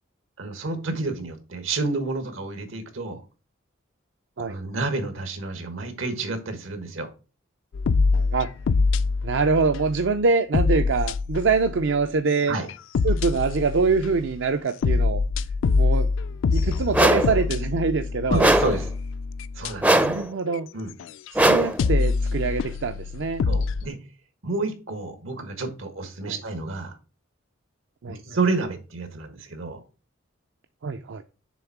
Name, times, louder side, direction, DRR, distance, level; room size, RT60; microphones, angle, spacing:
voice 1, 0.4-3.2 4.5-7.1 12.5-12.7 18.3-18.9 19.5-20.1 20.7-20.9 23.4-24.0 24.4-27.0 28.1-29.8, right 3 dB, 85° right, 1.5 m, -29 dB
sound 1, 7.7-10.1 10.5-12.0 12.4-14.4 14.8-20.0 20.5-20.6 21.0-21.3 21.8-23.9, left 4 dB, 70° left, 0.3 m, -25 dB
voice 2, 9.2-12.6 13.0-15.2 15.8-16.1 16.5-18.4 19.9-20.7 21.3-23.4 26.3-26.4 28.0-28.2 30.8-31.2, right 4 dB, 65° right, 0.5 m, -24 dB
sound 2, 16.9-17.4 18.4-18.9 19.8-20.3 21.4-21.8, right 1 dB, 10° right, 0.4 m, -19 dB
7.0 x 3.6 x 5.9 m
head